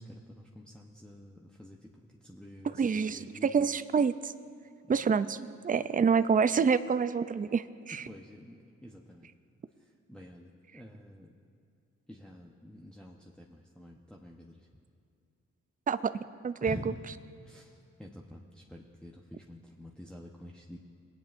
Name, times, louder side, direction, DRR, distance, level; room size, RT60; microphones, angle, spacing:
voice 1, 0.0-1.9 2.2-3.5 4.8-5.0 7.9-9.3 10.1-11.3 12.1-14.7 16.6-17.1 17.4-20.8, equal, 5° left, -1 dB, 0.9 m, -48 dB
voice 2, 2.8-4.3 4.9-5.4 5.6-8.1 15.9-16.8, right 6 dB, 25° right, 13 dB, 0.5 m, -27 dB
19.5 x 9.3 x 2.6 m, 2.5 s
supercardioid pair, 45°, 31 cm